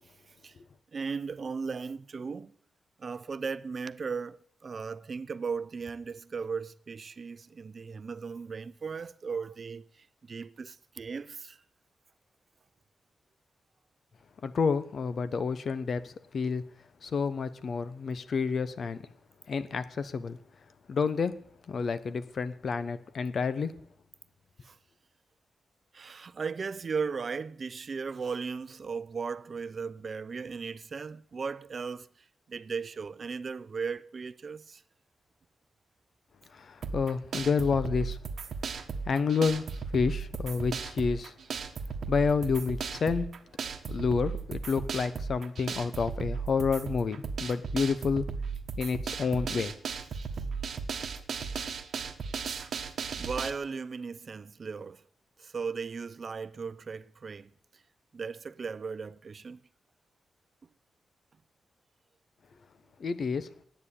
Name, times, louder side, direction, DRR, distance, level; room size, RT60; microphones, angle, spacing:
voice 1, 0.9-2.5 3.0-11.6 24.6-24.8 25.9-32.1 32.5-34.8 50.3-50.4 53.2-55.0 55.4-57.5 58.1-59.6, right 5 dB, 50° right, 0.6 m, -37 dB
voice 2, 14.4-16.6 17.0-19.0 19.5-20.4 20.9-21.4 21.7-23.7 36.5-38.2 39.1-41.3 42.1-43.3 43.9-48.2 48.8-49.7 63.0-63.5, left 5 dB, 60° left, 0.9 m, -29 dB
sound 1, 36.8-53.5, right 5 dB, 70° right, 1.2 m, -36 dB
10.0 x 9.2 x 8.4 m
cardioid pair, 80°, 0 cm